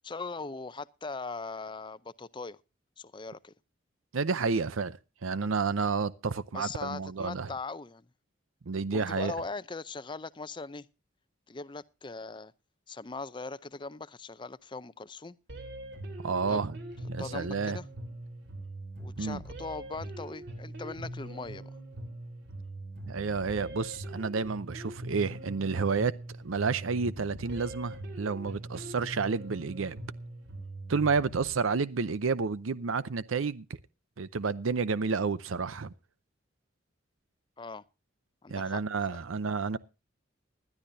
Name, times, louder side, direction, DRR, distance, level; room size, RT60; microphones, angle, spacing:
voice 1, 0.0-2.6 3.0-3.5 6.5-8.1 8.9-10.9 11.5-12.5 12.9-15.4 16.5-16.7 17.2-17.9 19.0-21.7 37.6-37.8 38.4-38.8 39.1-39.2, left 3 dB, 25° left, 0.5 m, -40 dB
voice 2, 4.1-7.5 8.7-9.3 16.2-16.7 17.1-17.8 19.2-19.4 23.1-26.1 26.4-30.0 30.9-33.7 34.2-35.9 38.5-39.8, right 4 dB, 85° right, 0.6 m, -30 dB
sound 1, 15.5-31.5, right 1 dB, 55° right, 3.6 m, -42 dB
20.5 x 12.0 x 2.7 m
head